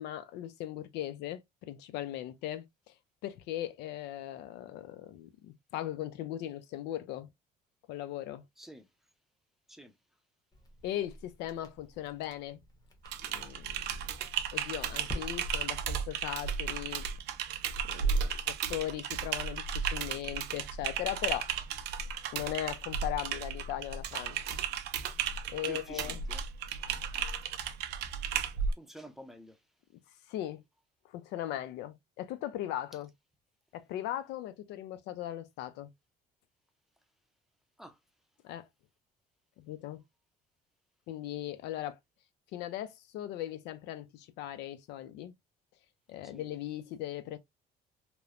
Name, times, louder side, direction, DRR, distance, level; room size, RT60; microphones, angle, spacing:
voice 1, 0.0-2.9 3.2-7.3 7.9-8.4 10.8-12.6 13.3-14.2 14.5-17.1 17.8-21.5 22.3-24.6 25.5-26.2 30.3-30.6 31.0-33.1 33.7-35.9 38.4-38.7 39.6-40.0 41.1-42.0 42.5-45.3 46.1-47.4, left 13 dB, 90° left, 0.4 m, -38 dB
Crackle, 10.5-15.8, equal, 20° left, 0.9 m, -48 dB
Typing, 13.0-28.7, right 7 dB, 75° right, 0.5 m, -34 dB
voice 2, 25.7-26.5 28.8-29.6 37.8-38.0 41.5-41.6 46.2-46.5, right 1 dB, ahead, 0.5 m, -48 dB
3.0 x 2.0 x 2.3 m
cardioid pair, 110°, 17 cm